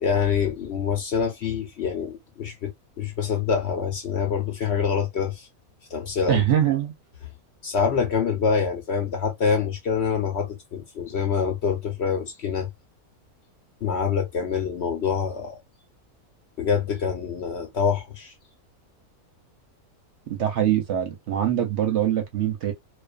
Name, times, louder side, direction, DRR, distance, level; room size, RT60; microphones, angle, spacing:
voice 1, 0.0-5.5 5.9-6.4 7.6-12.7 13.8-15.6 16.6-18.3, left 6 dB, 60° left, 0.8 m, -26 dB
voice 2, 6.3-6.9 20.3-22.7, right 10 dB, 60° right, 0.8 m, -23 dB
2.4 x 2.3 x 2.3 m
omnidirectional pair, 1.5 m